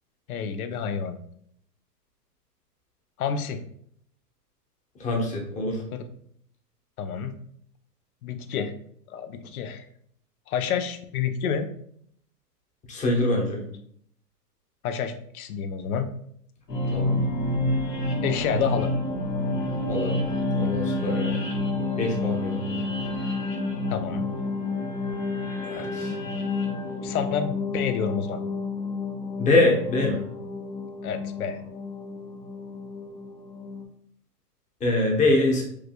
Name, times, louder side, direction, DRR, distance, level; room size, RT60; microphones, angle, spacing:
voice 1, 0.3-1.2 3.2-3.6 5.9-6.0 7.0-7.3 8.2-8.7 9.1-9.9 10.5-11.7 14.8-16.1 18.2-18.9 23.9-24.2 25.7-26.4 27.0-28.4 31.0-31.6, left 7 dB, 65° left, 9 dB, 0.6 m, -29 dB
voice 2, 5.0-5.8 12.9-13.6 16.9-17.2 19.9-20.1 20.5-21.3 22.0-22.8 25.6-26.1 29.4-30.2 34.8-35.6, left 2 dB, 15° left, -1 dB, 0.9 m, -24 dB
sound 1, 16.7-33.8, left 2 dB, 80° left, 1.6 m, -29 dB
4.8 x 3.3 x 2.2 m, 0.66 s
hypercardioid pair, 125°, 48 cm